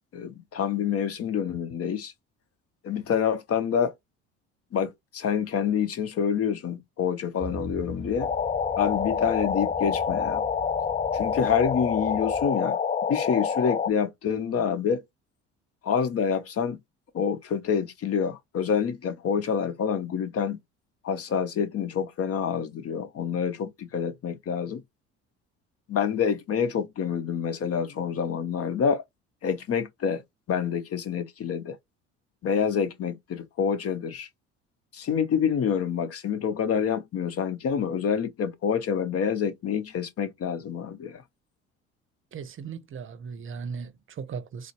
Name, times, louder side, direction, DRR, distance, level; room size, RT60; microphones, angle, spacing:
voice 1, 0.1-2.1 2.8-3.9 4.7-8.3 8.8-10.5 11.1-12.8 13.1-15.0 15.8-16.8 17.1-20.6 21.0-24.8 25.9-29.0 29.4-30.2 30.5-31.8 32.4-34.3 34.9-41.2, left 7 dB, 45° left, 0.8 m, -27 dB
sound 1, 7.4-12.5, right 2 dB, ahead, 1.1 m, -42 dB
sound 2, 8.2-13.9, left 6 dB, 20° left, 0.4 m, -27 dB
voice 2, 42.3-44.7, right 6 dB, 40° right, 0.7 m, -37 dB
3.9 x 2.0 x 2.9 m
hypercardioid pair, 65°, 34 cm